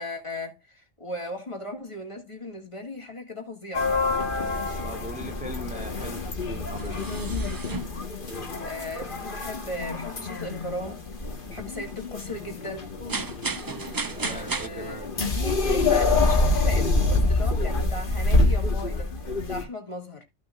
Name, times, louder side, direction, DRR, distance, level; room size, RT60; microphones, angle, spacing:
voice 1, 0.0-3.9 8.6-11.1 11.5-12.9 14.3-15.1 15.3-19.1 19.5-20.2, left 2 dB, 25° left, 2.1 m, -36 dB
sound 1, 3.7-19.6, left 2 dB, 45° left, 1.6 m, -26 dB
voice 2, 4.8-7.3 14.1-15.1, equal, 5° right, 0.9 m, -40 dB
sound 2, 6.8-14.7, right 4 dB, 35° right, 0.3 m, -36 dB
14.5 x 6.0 x 2.5 m
omnidirectional pair, 1.2 m